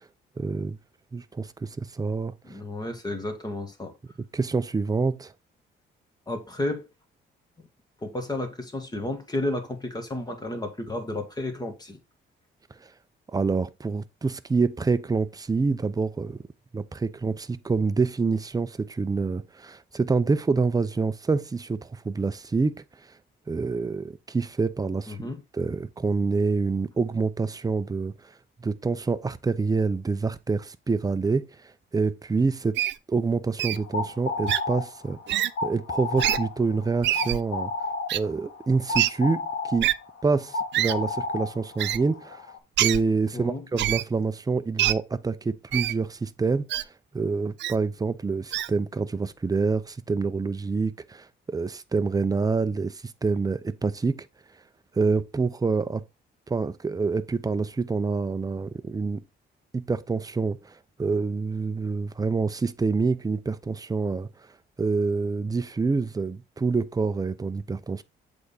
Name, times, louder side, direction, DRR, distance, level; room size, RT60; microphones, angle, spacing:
voice 1, 0.4-0.8 1.1-2.3 4.3-5.3 12.8-12.9 13.3-16.4 16.7-22.8 23.5-25.3 25.5-28.3 28.6-32.8 33.1-35.2 35.6-37.7 38.1-39.9 40.2-42.4 42.8-46.7 47.1-54.3 54.9-56.0 56.5-59.2 59.7-64.3 64.8-68.0, right 4 dB, 20° right, 0.6 m, -27 dB
voice 2, 2.4-3.9 6.3-6.8 7.6-7.7 8.0-12.0 25.1-25.4 43.3-43.7, left 1 dB, 20° left, 1.9 m, -32 dB
Wild animals, 32.8-33.0 33.6-33.8 34.5-34.6 35.3-35.5 36.2-36.4 37.0-37.4 38.1-38.2 38.9-39.1 39.8-39.9 40.7-40.9 41.8-42.0 42.8-43.0 43.8-44.0 44.8-44.9 45.7-45.9 46.7-46.8 47.6-47.7 48.5-48.7, right 13 dB, 65° right, 0.4 m, -25 dB
sound 1, 33.7-42.6, left 3 dB, 75° left, 1.7 m, -32 dB
7.9 x 3.6 x 4.1 m
cardioid pair, 90°, 20 cm